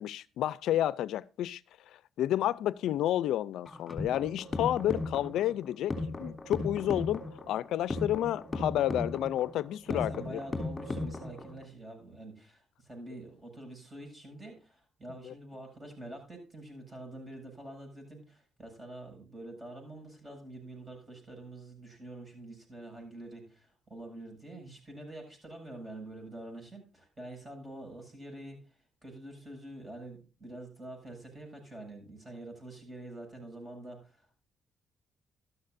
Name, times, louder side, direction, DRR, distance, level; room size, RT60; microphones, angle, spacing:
voice 1, 0.0-1.6 1.9-10.4 15.2-15.3, left 12 dB, 80° left, 0.5 m, -30 dB
sound 1, 3.7-11.6, left 2 dB, 25° left, 3.1 m, -37 dB
voice 2, 9.9-34.4, right 1 dB, 20° right, 7.7 m, -46 dB
13.0 x 13.0 x 2.6 m
cardioid pair, 90°, 0 cm